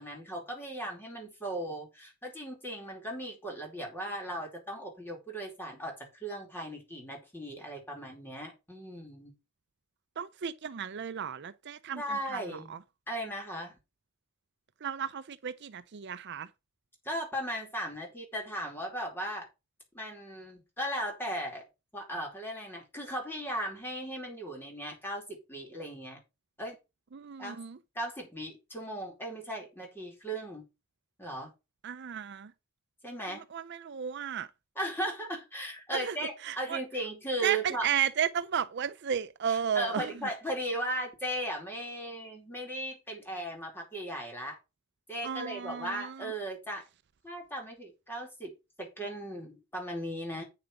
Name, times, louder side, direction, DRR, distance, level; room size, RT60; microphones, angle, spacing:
voice 1, 0.0-9.3 11.9-12.7 13.1-13.7 17.0-19.5 19.9-21.6 21.9-26.2 26.6-26.8 27.4-27.6 27.9-30.6 31.2-31.5 33.0-33.4 34.8-37.9 39.5-44.6 45.1-46.8 47.2-48.5 48.8-50.4, right 1 dB, 10° left, 4.6 m, -37 dB
voice 2, 10.2-12.8 14.8-16.5 27.1-27.8 31.8-32.5 33.3-34.5 35.9-36.2 36.4-36.8 37.4-40.3 45.2-46.3, right 8 dB, 50° right, 0.5 m, -34 dB
8.9 x 7.2 x 5.2 m
head